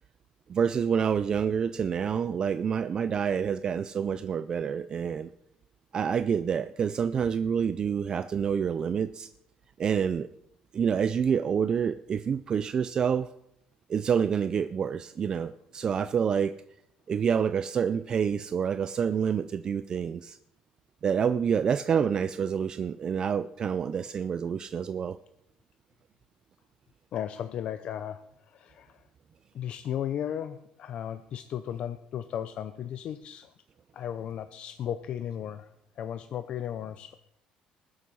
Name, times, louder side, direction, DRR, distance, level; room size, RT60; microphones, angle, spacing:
voice 1, 0.5-5.3 5.9-9.3 9.8-10.3 10.7-13.3 13.9-16.5 17.1-20.4 21.0-25.2, right 7 dB, 35° right, 12 dB, 0.4 m, -27 dB
voice 2, 27.1-29.0 29.5-33.5 33.9-35.7 36.0-37.1, left 10 dB, 50° left, 10 dB, 0.6 m, -35 dB
20.0 x 7.6 x 5.5 m, 0.80 s
cardioid pair, 145°, 2 cm